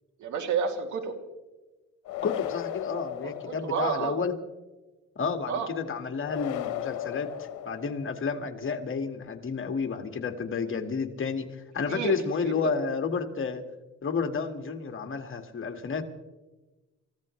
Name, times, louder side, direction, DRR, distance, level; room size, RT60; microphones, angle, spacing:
voice 1, 0.2-1.1 3.2-4.1 5.5-5.7 11.9-12.1 12.5-12.7, right 6 dB, 75° right, 4 dB, 2.8 m, -30 dB
sound 1, 2.1-4.1 6.2-8.3, left 12 dB, 90° left, 0.9 m, -36 dB
voice 2, 2.2-4.3 5.2-13.6 14.0-16.0, left 5 dB, 45° left, 6 dB, 1.8 m, -31 dB
28.5 x 15.5 x 3.2 m, 1.1 s
cardioid pair, 90°, 30 cm